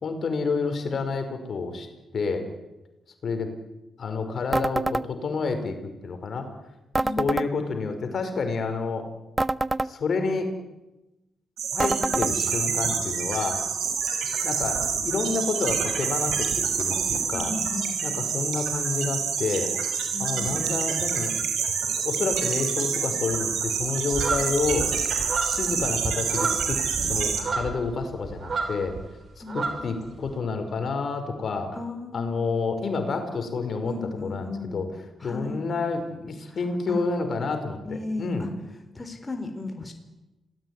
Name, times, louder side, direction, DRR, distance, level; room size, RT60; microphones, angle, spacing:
voice 1, 0.0-1.9 2.1-2.4 3.2-3.5 4.0-5.7 6.0-6.5 7.2-9.0 9.8-10.5 11.7-13.6 14.4-17.5 18.0-19.7 20.2-21.3 22.0-24.9 25.4-28.9 29.4-31.7 32.1-33.9 34.2-34.9 35.2-38.5, left 4 dB, 55° left, 7 dB, 5.0 m, -29 dB
sound 1, 4.5-5.1 6.9-7.5 9.4-9.9 11.8-12.3, right 2 dB, 20° right, 0.8 m, -25 dB
voice 2, 7.0-7.4 17.3-18.0 20.1-20.7 29.4-29.6 31.7-32.5 33.8-34.9 35.2-35.6 36.5-36.6 36.9-37.1 37.8-38.5 38.9-39.9, left 3 dB, 25° left, 6 dB, 3.9 m, -35 dB
sound 2, 11.6-27.4, right 6 dB, 80° right, 6.3 m, -27 dB
sound 3, 24.1-29.1 29.3-30.3, right 4 dB, 50° right, 6.2 m, -31 dB
27.0 x 18.5 x 9.7 m, 1.0 s
cardioid pair, 65°, 0 cm